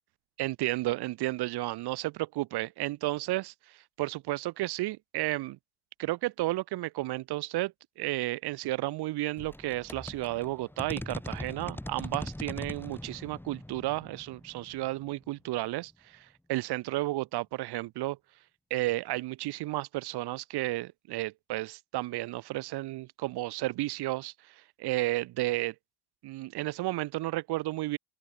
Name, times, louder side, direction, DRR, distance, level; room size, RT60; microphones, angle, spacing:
voice 1, 0.4-5.6 6.0-18.2 18.7-25.7 26.2-28.0, right 18 dB, 75° right, 6.6 m, -32 dB
sound 1, 9.4-15.8, left 1 dB, 5° left, 3.6 m, -42 dB
open air
supercardioid pair, 75°, 39 cm